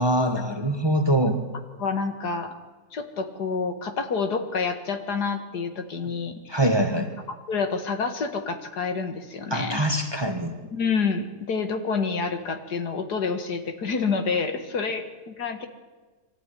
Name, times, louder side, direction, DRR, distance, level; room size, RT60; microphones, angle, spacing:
voice 1, 0.0-1.4 6.5-7.1 9.5-10.5, right 1 dB, 15° right, 6 dB, 1.5 m, -23 dB
voice 2, 1.8-2.5 2.9-6.6 6.9-7.0 7.5-9.8 10.7-15.7, left 5 dB, 75° left, 7 dB, 2.3 m, -28 dB
23.0 x 14.0 x 9.9 m, 1.3 s
omnidirectional pair, 1.7 m